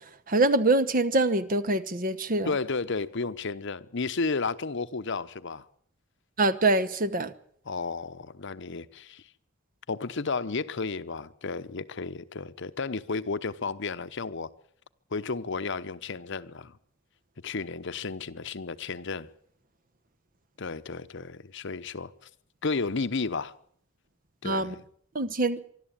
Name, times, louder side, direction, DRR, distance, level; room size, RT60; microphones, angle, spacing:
voice 1, 0.3-2.5 6.4-7.3 24.4-24.7 25.1-25.6, right 2 dB, 45° right, 1.1 m, -24 dB
voice 2, 2.4-5.6 7.7-9.2 9.9-14.5 15.1-16.7 17.4-19.3 20.6-22.1 22.6-23.5 24.4-24.8, left 4 dB, 60° left, 0.9 m, -32 dB
24.5 x 12.0 x 8.9 m
head